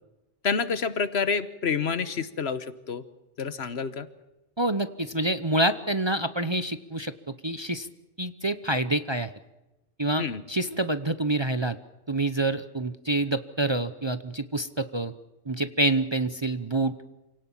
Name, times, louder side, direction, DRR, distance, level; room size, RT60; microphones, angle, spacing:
voice 1, 0.4-3.0 3.4-4.1 10.2-10.4, left 5 dB, 60° left, 14 dB, 1.3 m, -28 dB
voice 2, 4.6-7.9 8.2-9.3 10.0-11.8 12.1-15.1 15.5-17.0, right 2 dB, 25° right, 11 dB, 0.8 m, -27 dB
27.5 x 18.0 x 7.3 m, 1.0 s
omnidirectional pair, 1.2 m